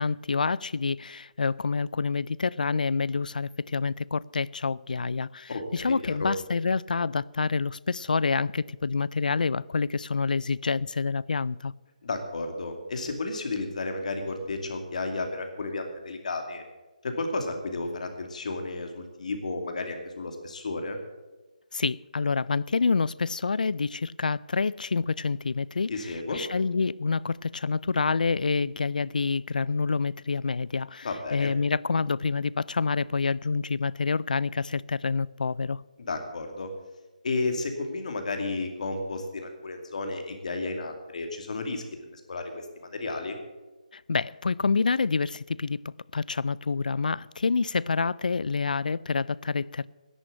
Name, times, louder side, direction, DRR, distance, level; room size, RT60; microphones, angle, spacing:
voice 1, 0.0-11.7 21.7-25.9 26.3-35.8 43.9-49.9, left 4 dB, 80° left, 0.4 m, -27 dB
voice 2, 5.5-6.3 12.0-16.6 17.0-21.0 25.9-26.4 31.0-31.5 36.0-36.7 37.2-43.4, left 3 dB, 60° left, 2.5 m, -32 dB
11.0 x 9.1 x 8.5 m
hypercardioid pair, 160°, 4 cm